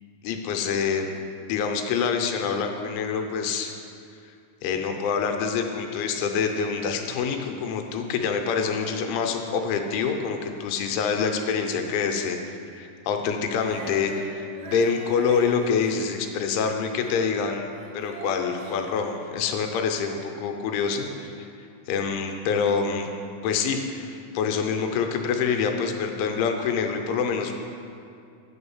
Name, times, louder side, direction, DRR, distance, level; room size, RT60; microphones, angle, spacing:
voice 1, 0.2-1.1 1.5-3.8 4.6-12.4 12.8-21.5 21.9-23.1 23.4-27.5, left 6 dB, 85° left, 4 dB, 3.1 m, -26 dB
Female singing, 13.6-17.4 17.7-19.8, right 1 dB, 70° right, 2.1 m, -41 dB
9.2 x 4.4 x 7.0 m, 2.4 s
omnidirectional pair, 5.4 m